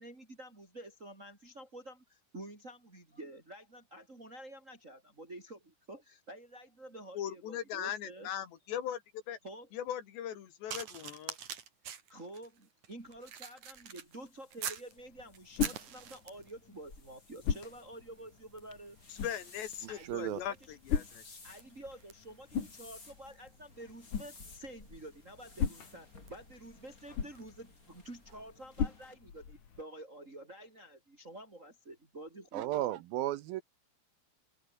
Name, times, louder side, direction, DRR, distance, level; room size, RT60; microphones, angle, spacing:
voice 1, 0.0-8.3 9.4-9.7 12.1-19.0 19.9-20.8 21.4-32.7, right 1 dB, 15° right, 4.8 m, -49 dB
voice 2, 7.1-9.0 9.3-9.4 9.7-11.4 19.2-20.5 20.8-21.4, left 10 dB, 85° left, 4.8 m, -39 dB
sound 1, 10.7-14.9 15.3-16.6 17.4-17.6 17.9-27.6 28.3-28.4, right 8 dB, 50° right, 3.4 m, -47 dB
sound 2, 13.0-29.1, left 3 dB, 20° left, 4.1 m, -58 dB
sound 3, 14.9-29.8, left 7 dB, 50° left, 4.4 m, -40 dB
voice 3, 20.1-20.4 32.5-33.6, right 14 dB, 75° right, 2.3 m, -34 dB
open air
omnidirectional pair, 4.9 m